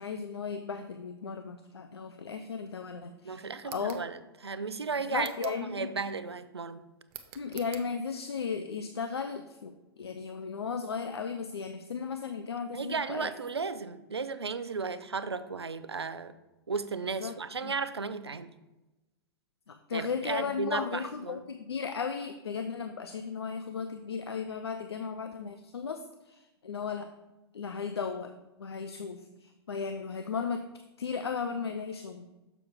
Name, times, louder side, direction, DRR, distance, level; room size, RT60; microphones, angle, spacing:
voice 1, 0.0-4.0 5.1-5.9 7.4-13.3 17.2-17.3 17.6-17.7 19.7-27.1 27.5-30.6 31.0-32.3, left 5 dB, 75° left, 8 dB, 0.5 m, -36 dB
voice 2, 3.2-6.8 12.7-16.4 16.7-18.5 19.9-21.4, right 4 dB, 85° right, 13 dB, 0.5 m, -35 dB
sound 1, 3.6-4.1 5.2-5.7 7.1-7.9, right 11 dB, 35° right, 0.7 m, -47 dB
6.9 x 5.9 x 3.6 m, 1.0 s
figure-of-eight pair, 110°, 13 cm